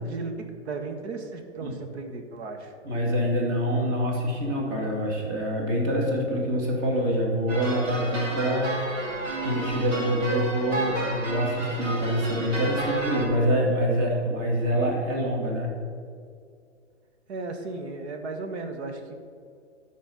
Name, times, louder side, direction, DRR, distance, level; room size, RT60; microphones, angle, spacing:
voice 1, 0.0-2.7 17.3-19.1, right 3 dB, 60° right, 6 dB, 1.4 m, -35 dB
voice 2, 2.8-15.7, equal, 35° right, -1 dB, 2.4 m, -26 dB
sound 1, 7.5-13.3, right 2 dB, 80° right, 2.4 m, -32 dB
11.5 x 4.4 x 6.4 m, 2.3 s
hypercardioid pair, 125°, 37 cm